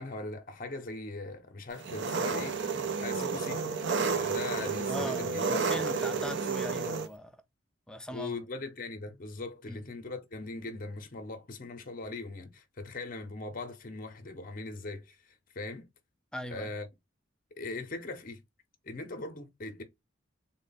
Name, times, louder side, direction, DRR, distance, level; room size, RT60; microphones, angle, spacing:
voice 1, 0.0-2.7 3.0-3.7 4.0-5.5 5.7-5.9 8.1-15.9 16.5-16.9 17.5-18.4 18.8-19.8, left 3 dB, 45° left, 0.6 m, -40 dB
Engine, 1.8-7.1, right 4 dB, 60° right, 0.5 m, -31 dB
voice 2, 4.9-7.3 7.9-8.4 9.7-9.8 16.3-16.7, left 1 dB, 5° left, 0.3 m, -40 dB
3.7 x 2.1 x 3.9 m
head